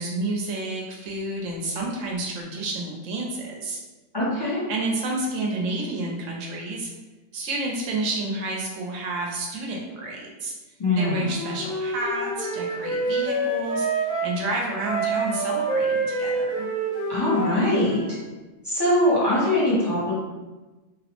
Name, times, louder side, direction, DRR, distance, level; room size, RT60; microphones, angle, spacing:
voice 1, 0.0-3.8 4.4-6.9 7.3-10.5 11.0-16.7, right 2 dB, 85° right, -1 dB, 1.0 m, -30 dB
voice 2, 4.1-4.6 10.8-11.3 17.1-18.0 18.6-20.1, left 1 dB, 25° left, -10 dB, 0.7 m, -22 dB
Wind instrument woodwind instrument, 11.2-14.3 14.8-18.1, right 2 dB, 55° left, 1.3 m, -27 dB
3.0 x 2.0 x 2.9 m, 1.2 s
omnidirectional pair, 1.3 m